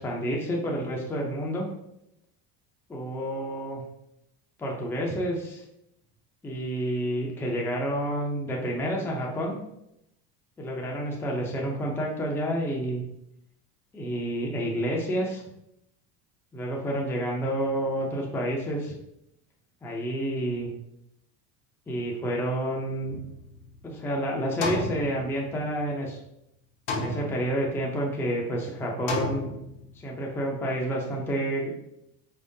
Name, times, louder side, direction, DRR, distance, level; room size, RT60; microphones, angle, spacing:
voice 1, 0.0-1.7 2.9-3.8 4.6-5.6 6.4-9.6 10.6-13.0 13.9-15.4 16.5-18.9 19.8-20.7 21.9-23.2 23.8-26.2 26.9-29.5 29.9-31.7, right 1 dB, 5° left, -1 dB, 0.4 m, -29 dB
sound 1, 23.1-24.0 24.6-25.9 26.9-27.8 29.1-30.0, left 3 dB, 85° left, 1.0 m, -33 dB
4.3 x 3.6 x 2.6 m, 0.81 s
cardioid pair, 160°, 37 cm